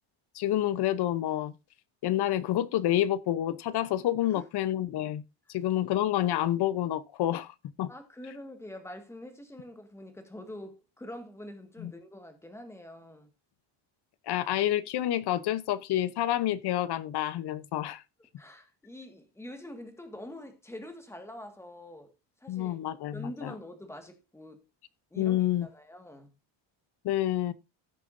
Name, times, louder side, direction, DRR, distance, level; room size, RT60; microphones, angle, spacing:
voice 1, 0.3-1.5 2.0-5.2 5.5-7.9 11.8-11.9 14.3-18.0 22.5-23.5 25.2-25.7 27.0-27.5, left 13 dB, 55° left, 0.9 m, -28 dB
voice 2, 7.9-13.3 18.4-22.1 22.4-22.8 23.1-24.7 25.1-26.3, left 1 dB, 5° left, 1.8 m, -45 dB
16.5 x 6.6 x 2.6 m
cardioid pair, 170°, 48 cm